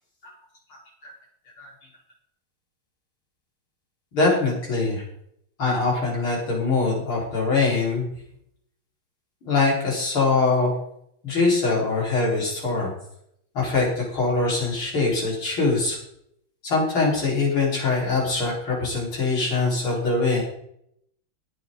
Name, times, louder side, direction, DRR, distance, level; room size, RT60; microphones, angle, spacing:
voice 1, 4.1-5.0 5.6-8.1 9.4-10.7 11.2-12.9 13.5-16.0 16.6-20.4, left 3 dB, 75° left, -4 dB, 5.6 m, -23 dB
16.5 x 9.7 x 4.0 m, 0.73 s
omnidirectional pair, 2.3 m